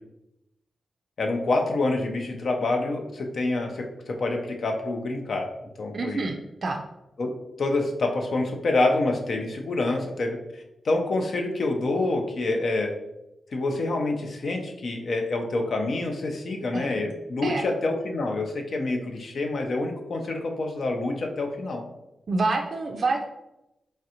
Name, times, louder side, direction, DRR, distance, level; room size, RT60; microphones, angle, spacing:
voice 1, 1.2-5.5 5.8-6.3 7.2-7.3 7.6-12.9 13.5-21.8, left 2 dB, 65° left, 3 dB, 0.5 m, -27 dB
voice 2, 5.9-6.8 16.7-17.0 17.4-17.7 22.3-23.2, right 3 dB, 60° right, 2 dB, 0.3 m, -27 dB
3.2 x 2.4 x 2.8 m, 0.90 s
cardioid pair, 55°, 0 cm